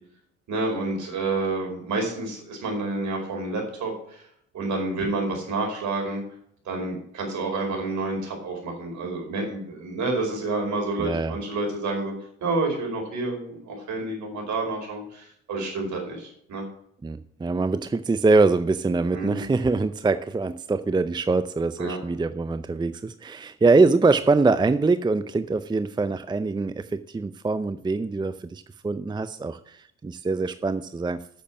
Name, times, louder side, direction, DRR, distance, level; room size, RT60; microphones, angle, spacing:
voice 1, 0.5-4.2 4.5-6.2 6.6-12.1 12.4-16.6 19.1-19.4 21.8-22.0, right 3 dB, 60° right, 2 dB, 4.9 m, -29 dB
voice 2, 11.0-11.4 17.0-31.2, right 3 dB, 15° right, 12 dB, 0.5 m, -23 dB
8.9 x 7.3 x 6.1 m, 0.67 s
supercardioid pair, 65°, 32 cm